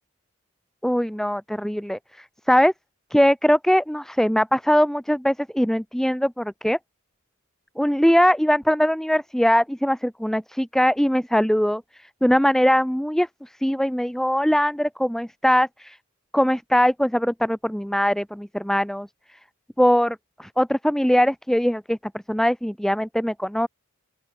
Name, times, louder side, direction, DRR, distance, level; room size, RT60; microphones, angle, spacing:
voice 1, 0.8-2.7 3.1-6.8 7.8-11.8 12.2-16.0 16.3-19.1 19.8-22.0 22.3-23.7, equal, ahead, 0.7 m, -21 dB
open air
head